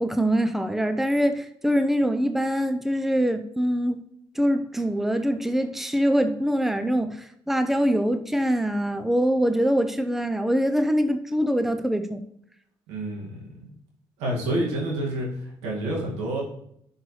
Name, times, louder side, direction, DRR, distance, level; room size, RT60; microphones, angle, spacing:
voice 1, 0.0-4.0 4.3-12.2, equal, 5° right, 8 dB, 0.7 m, -24 dB
voice 2, 12.9-13.5 14.2-15.3 15.6-16.4, right 1 dB, 85° right, -2 dB, 2.2 m, -28 dB
10.5 x 6.4 x 3.3 m, 0.73 s
supercardioid pair, 55°, 11 cm